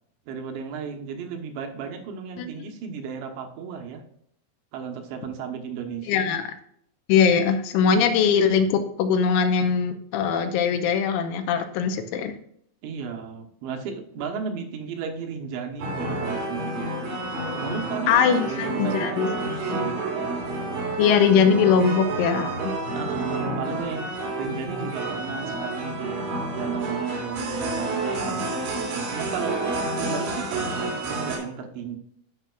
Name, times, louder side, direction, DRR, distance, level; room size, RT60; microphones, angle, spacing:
voice 1, 0.3-4.0 4.7-6.3 12.8-17.2 17.5-20.0 22.9-32.0, right 6 dB, 75° right, 3 dB, 3.1 m, -34 dB
voice 2, 6.1-6.5 7.1-12.4 18.1-19.3 19.7-19.8 21.0-22.7, left 6 dB, 85° left, 7 dB, 3.1 m, -21 dB
sound 1, 15.8-31.4, right 2 dB, 90° right, 5.4 m, -29 dB
13.5 x 5.9 x 2.4 m, 0.68 s
omnidirectional pair, 5.7 m